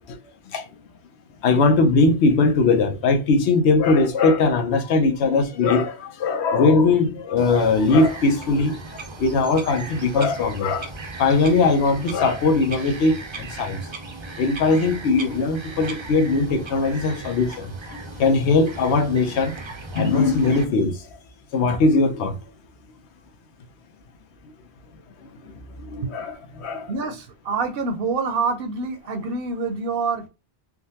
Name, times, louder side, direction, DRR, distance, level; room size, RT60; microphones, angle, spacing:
voice 1, 1.4-10.9 11.2-13.8 14.4-19.6 19.9-21.2 21.5-22.4 25.2-26.9, left 3 dB, 85° left, 1.0 m, -20 dB
Bird vocalization bird call bird song, 7.4-20.6, right 3 dB, 40° right, 0.4 m, -37 dB
voice 2, 26.9-30.3, right 4 dB, 65° right, 0.8 m, -26 dB
3.6 x 2.2 x 2.7 m
omnidirectional pair, 1.1 m